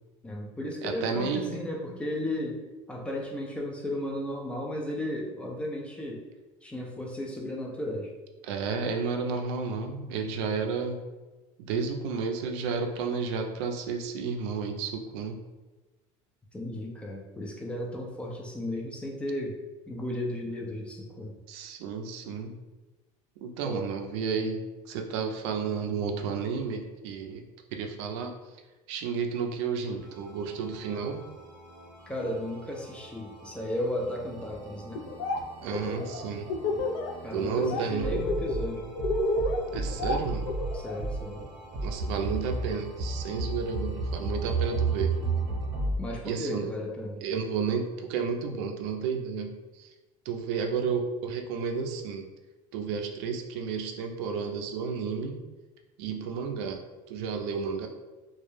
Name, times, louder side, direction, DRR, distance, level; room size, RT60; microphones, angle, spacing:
voice 1, 0.2-2.6 2.9-6.2 6.6-8.1 16.5-19.6 19.9-21.4 23.6-23.8 32.1-35.0 37.2-38.9 40.7-41.4 46.0-47.2, left 1 dB, 10° left, -1 dB, 0.3 m, -34 dB
voice 2, 0.8-1.5 8.4-11.0 11.6-15.4 21.5-22.6 23.4-27.4 27.7-28.3 28.9-31.2 35.6-36.5 37.3-38.3 39.7-40.5 41.8-45.2 46.2-46.7 47.2-49.9 50.3-52.3 52.7-55.4 56.0-56.8 57.1-57.9, right 5 dB, 85° right, 4 dB, 0.4 m, -32 dB
sound 1, 30.0-46.0, right 3 dB, 35° right, 0.8 m, -35 dB
Laughter, 34.9-35.4 35.7-37.1 37.4-37.8 38.1-41.0, left 2 dB, 85° left, 0.4 m, -30 dB
2.2 x 2.0 x 3.0 m, 1.2 s
cardioid pair, 145°, 14 cm